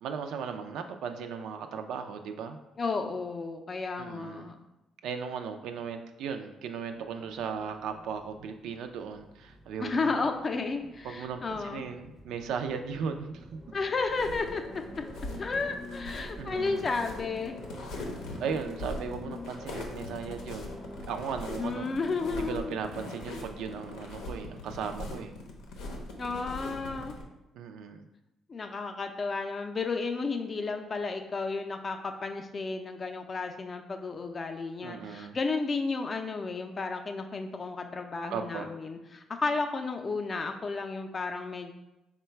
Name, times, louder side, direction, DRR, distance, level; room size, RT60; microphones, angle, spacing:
voice 1, 0.0-2.6 4.0-4.5 5.0-10.2 11.0-13.6 16.4-16.8 18.4-20.7 21.1-21.9 22.3-25.4 27.5-28.0 34.8-35.4 38.3-38.6, right 6 dB, 80° right, 6 dB, 0.3 m, -37 dB
voice 2, 2.8-4.6 9.8-11.8 13.7-14.8 15.4-17.6 21.6-22.8 26.2-27.2 28.5-41.7, left 4 dB, 35° left, 5 dB, 0.4 m, -32 dB
sound 1, 7.0-21.1, left 1 dB, 15° right, 0.5 m, -48 dB
sound 2, 14.1-27.2, left 2 dB, 90° left, 0.7 m, -41 dB
3.8 x 2.2 x 4.4 m, 0.96 s
cardioid pair, 90°, 0 cm